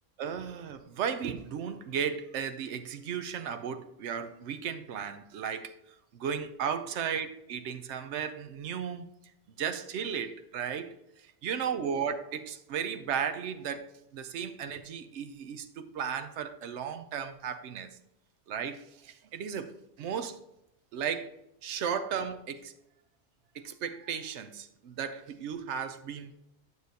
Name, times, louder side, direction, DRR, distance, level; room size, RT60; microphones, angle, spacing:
voice 1, 0.2-5.8 6.1-9.1 9.6-11.0 11.4-17.9 18.5-20.4 20.9-21.3 21.6-22.7 23.5-26.3, right 7 dB, 85° right, 0.9 m, -35 dB
9.6 x 6.4 x 2.7 m
omnidirectional pair, 1.2 m